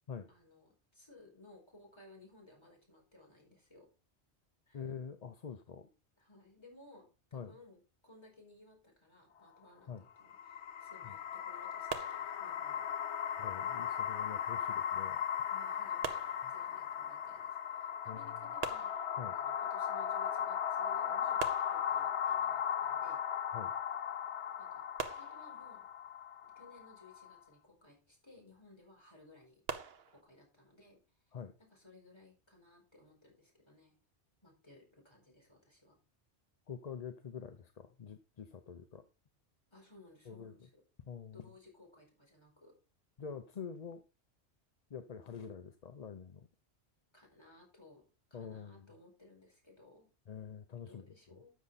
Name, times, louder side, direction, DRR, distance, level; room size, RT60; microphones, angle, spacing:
voice 1, 0.3-3.9 4.7-4.9 6.2-7.8 8.0-9.9 10.2-12.9 15.5-23.2 24.6-24.8 25.1-25.9 26.5-29.6 30.1-33.9 34.4-36.0 39.7-40.8 41.3-42.7 47.1-48.0 48.3-50.1 50.9-51.5, left 2 dB, 25° left, -1 dB, 4.7 m, -60 dB
voice 2, 4.7-5.9 7.3-7.6 9.9-10.0 11.0-11.2 13.4-15.2 16.4-16.5 18.1-18.4 19.2-19.4 23.5-23.7 31.3-31.5 36.7-39.0 40.3-40.5 41.1-41.5 43.2-44.0 44.9-46.5 48.3-48.9 50.3-51.0, left 7 dB, 45° left, 9 dB, 0.6 m, -46 dB
sound 1, 10.2-27.4, left 9 dB, 85° left, 1.0 m, -37 dB
sound 2, 11.9-12.9 16.0-17.1 18.6-19.6 21.4-22.4 25.0-26.0 29.7-30.2, right 6 dB, 65° right, 1.1 m, -43 dB
13.0 x 6.6 x 4.1 m, 0.33 s
omnidirectional pair, 1.1 m